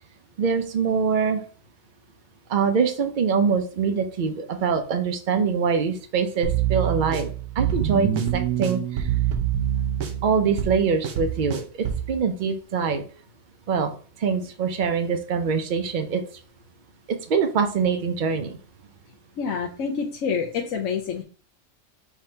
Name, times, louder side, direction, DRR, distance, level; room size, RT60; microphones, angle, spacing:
voice 1, 0.4-1.4 2.5-9.1 10.2-13.0 13.7-13.9 14.2-16.2 17.1-18.6, right 6 dB, 85° right, 7 dB, 0.4 m, -24 dB
sound 1, 6.4-12.1, right 10 dB, 65° right, 1.0 m, -26 dB
voice 2, 19.4-21.2, left 6 dB, 70° left, 0 dB, 1.0 m, -27 dB
5.8 x 2.9 x 3.2 m, 0.40 s
omnidirectional pair, 1.5 m